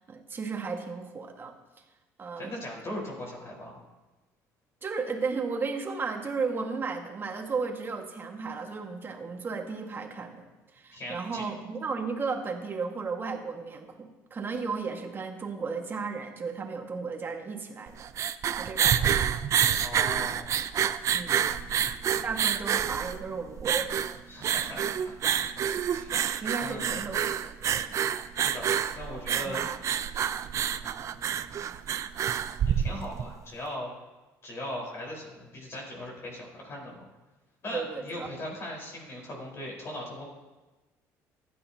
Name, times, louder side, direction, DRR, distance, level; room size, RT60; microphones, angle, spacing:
voice 1, 0.0-1.5 2.2-2.5 4.8-10.5 10.7-18.1 18.6-19.1 21.1-21.4 22.2-24.0 26.4-27.4 27.7-28.0 29.4-29.6 37.7-38.3, right 4 dB, 30° right, 3 dB, 1.7 m, -34 dB
voice 2, 2.4-3.8 10.9-11.5 19.8-20.5 21.2-22.5 24.3-26.3 26.6-27.0 28.4-28.7 28.9-29.7 30.6-31.8 32.8-33.9 34.4-37.0 37.6-40.2, left 1 dB, 40° left, -2 dB, 4.3 m, -40 dB
sound 1, 17.9-33.3, right 9 dB, 45° right, 0.5 m, -28 dB
15.5 x 11.0 x 2.8 m, 1.2 s
cardioid pair, 100°, 7 cm